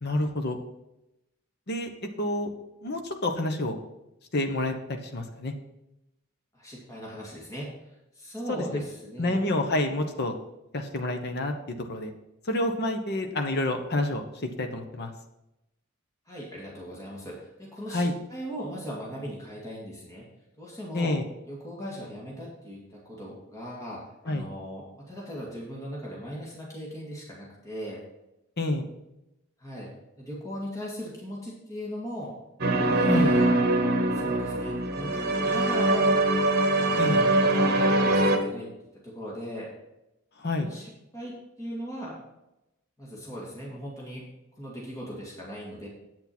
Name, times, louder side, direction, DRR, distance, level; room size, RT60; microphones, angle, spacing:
voice 1, 0.0-0.6 1.7-1.9 2.2-2.5 2.8-3.8 4.3-5.5 8.5-8.8 9.2-10.3 10.7-11.5 11.9-12.1 12.5-14.2 14.6-15.1 17.9-18.1 20.9-21.3 24.3-24.5 28.6-28.8 33.1-33.4 37.0-37.2 40.4-40.7, left 2 dB, 50° left, 5 dB, 1.1 m, -28 dB
voice 2, 6.5-7.7 8.1-9.4 16.3-20.2 20.6-21.2 21.5-28.0 29.6-29.9 30.2-32.3 32.7-33.5 34.1-36.2 36.7-38.7 39.0-39.7 40.6-42.2 43.0-44.2 44.6-45.9, equal, 15° left, -5 dB, 2.1 m, -38 dB
sound 1, 32.6-38.4, right 2 dB, 50° right, 1.1 m, -23 dB
8.8 x 8.3 x 4.4 m, 0.91 s
head